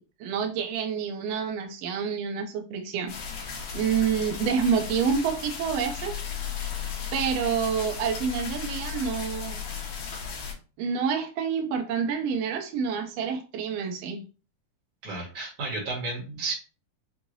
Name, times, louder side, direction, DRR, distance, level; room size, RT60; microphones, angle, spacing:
voice 1, 0.0-3.1 3.7-6.2 7.1-9.7 10.8-14.2, right 6 dB, 85° right, 4 dB, 1.4 m, -28 dB
sound 1, 3.1-10.5, left 7 dB, 70° left, 2.6 m, -35 dB
voice 2, 15.0-16.5, right 3 dB, 50° right, -4 dB, 2.4 m, -32 dB
6.1 x 2.7 x 2.6 m, 0.35 s
omnidirectional pair, 3.6 m